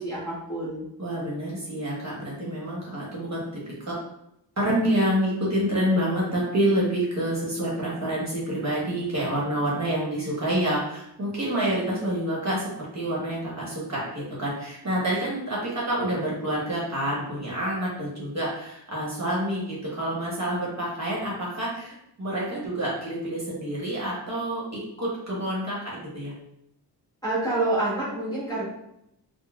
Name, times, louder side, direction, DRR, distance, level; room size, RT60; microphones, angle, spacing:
voice 1, 0.0-0.9 27.2-28.6, right 2 dB, 10° left, -11 dB, 1.0 m, -27 dB
voice 2, 1.0-3.9 4.6-26.3, right 1 dB, 40° right, -5 dB, 1.1 m, -28 dB
3.8 x 2.1 x 2.3 m, 0.79 s
wide cardioid pair, 105°, 43 cm